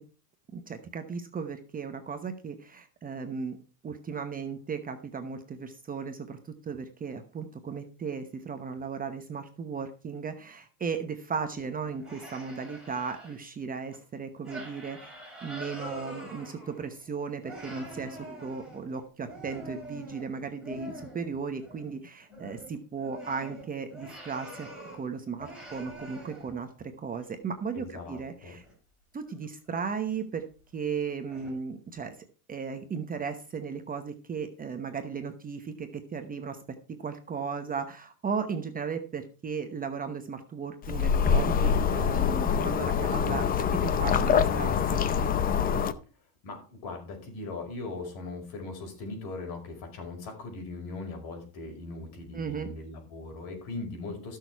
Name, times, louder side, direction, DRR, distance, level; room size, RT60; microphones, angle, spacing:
voice 1, 0.5-3.6 3.8-15.1 15.4-24.7 24.9-28.6 29.1-30.4 30.7-32.2 32.5-36.6 37.0-43.4 43.8-45.0 52.3-52.7, right 5 dB, 20° right, 6 dB, 0.9 m, -36 dB
sound 1, 11.8-13.4 13.9-14.0 14.4-17.1 17.4-21.3 21.6-22.0 22.2-25.1 25.4-26.7 27.2-27.3 28.6-28.7 29.3-29.5 29.9-30.0 30.7-30.8 31.3-31.5, right 1 dB, ahead, 5.5 m, -45 dB
voice 2, 27.7-28.6 46.4-54.4, left 3 dB, 50° left, 3 dB, 5.1 m, -39 dB
sound 2, 40.8-45.9, left 7 dB, 20° left, 0.5 m, -25 dB
14.0 x 6.5 x 4.6 m, 0.37 s
supercardioid pair, 130°, 46 cm